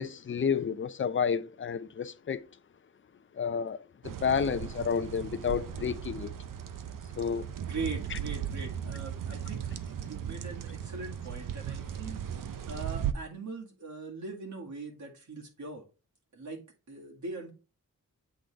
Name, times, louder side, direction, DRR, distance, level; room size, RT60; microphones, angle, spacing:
voice 1, 0.0-2.4 3.4-3.8 4.0-6.3 7.2-7.5 8.1-8.2, left 7 dB, 40° left, 0.5 m, -30 dB
sound 1, 4.0-13.1, right 9 dB, 85° right, 0.6 m, -37 dB
voice 2, 7.6-9.7 10.0-15.8 16.3-17.5, right 3 dB, 65° right, 2.0 m, -41 dB
8.0 x 3.8 x 3.3 m
wide cardioid pair, 130°, 32 cm